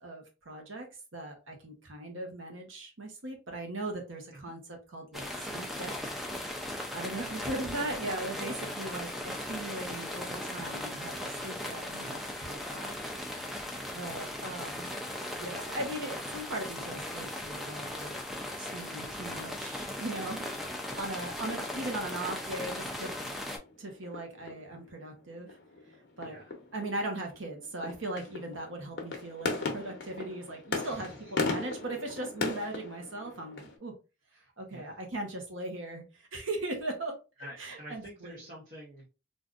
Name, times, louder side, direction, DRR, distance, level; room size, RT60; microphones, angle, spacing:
voice 1, 0.0-6.0 6.9-12.9 13.3-13.6 13.9-14.9 15.4-18.1 18.6-23.1 23.8-25.6 26.2-26.4 26.7-33.9 34.6-38.4, right 1 dB, 80° right, 2 dB, 1.0 m, -39 dB
sound 1, 5.1-23.6, left 1 dB, ahead, 0.4 m, -38 dB
voice 2, 13.7-14.0 21.1-21.4 26.2-26.4 30.8-31.1 34.4-35.0 37.4-39.0, equal, 40° right, -7 dB, 0.9 m, -48 dB
sound 2, 20.8-33.8, left 3 dB, 55° left, 0.7 m, -39 dB
3.7 x 2.5 x 2.4 m, 0.30 s
head